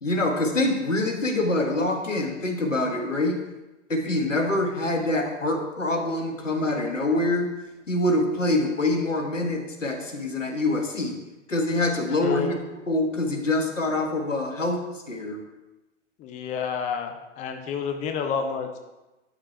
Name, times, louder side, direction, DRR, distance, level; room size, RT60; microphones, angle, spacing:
voice 1, 0.0-3.4 3.9-7.5 7.9-11.1 11.5-12.5 12.9-14.8 15.1-15.4, left 2 dB, 85° left, 3 dB, 1.5 m, -25 dB
voice 2, 12.2-12.6 16.2-18.8, left 6 dB, 20° left, 4 dB, 0.7 m, -29 dB
11.5 x 4.4 x 4.4 m, 1.1 s
figure-of-eight pair, 110°, 37 cm